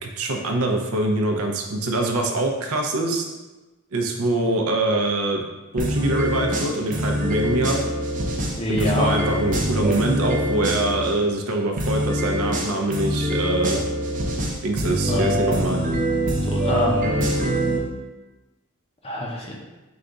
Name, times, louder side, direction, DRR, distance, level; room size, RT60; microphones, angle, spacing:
voice 1, 0.0-3.3 3.9-5.4 5.7-7.8 8.7-13.8 14.6-15.8, right 2 dB, 80° right, 2 dB, 0.6 m, -24 dB
sound 1, 5.8-11.1 11.8-17.8, equal, 40° right, 0.5 m, -24 dB
voice 2, 8.6-9.1 15.1-15.3 16.5-17.2 19.0-19.6, left 1 dB, 25° left, -2 dB, 0.5 m, -25 dB
4.9 x 2.3 x 3.8 m, 1.1 s
head